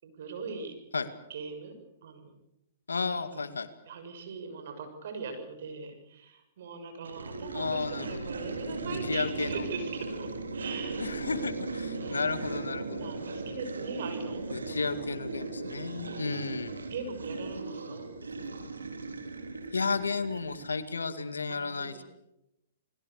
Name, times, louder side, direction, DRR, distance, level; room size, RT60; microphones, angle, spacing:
voice 1, 0.0-0.7 1.3-1.7 2.0-2.3 3.1-3.4 3.9-11.1 11.9-12.5 13.0-15.1 16.9-18.1 21.5-22.0, right 4 dB, 60° right, 7 dB, 6.8 m, -41 dB
voice 2, 2.9-3.7 7.5-8.3 8.7-8.8 9.0-9.6 11.0-13.1 14.5-16.8 19.7-22.0, left 4 dB, 85° left, 10 dB, 2.2 m, -33 dB
sound 1, 7.0-20.9, right 3 dB, 85° right, 3.2 m, -37 dB
29.5 x 20.5 x 6.8 m, 0.88 s
hypercardioid pair, 120°, 0 cm